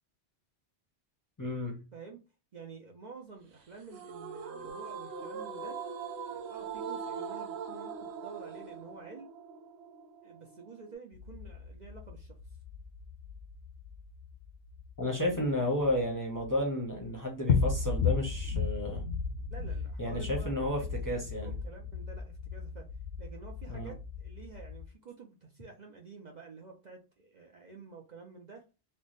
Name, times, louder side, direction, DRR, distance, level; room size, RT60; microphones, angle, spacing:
voice 1, 1.4-1.8 15.0-19.0 20.0-21.5 23.7-23.9, left 1 dB, 20° left, 0.7 m, -32 dB
voice 2, 1.9-2.2 2.5-5.8 6.2-9.3 10.2-12.4 19.5-22.9 23.2-28.7, right 4 dB, 50° right, 0.6 m, -50 dB
sound 1, 3.9-10.9, right 6 dB, 70° right, 0.9 m, -41 dB
sound 2, 11.1-16.6 16.9-17.1 17.5-24.9, left 5 dB, 65° left, 0.7 m, -35 dB
3.2 x 2.1 x 3.9 m
omnidirectional pair, 1.2 m